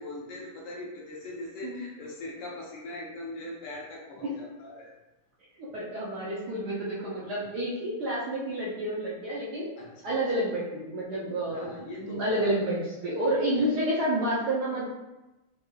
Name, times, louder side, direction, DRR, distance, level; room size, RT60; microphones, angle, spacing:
voice 1, 0.0-4.9 9.8-10.2 11.5-12.5 13.6-13.7, left 2 dB, 70° left, -3 dB, 1.3 m, -41 dB
voice 2, 5.6-9.7 10.0-14.9, right 1 dB, 65° right, -7 dB, 1.0 m, -29 dB
4.6 x 2.3 x 2.3 m, 1.0 s
omnidirectional pair, 2.3 m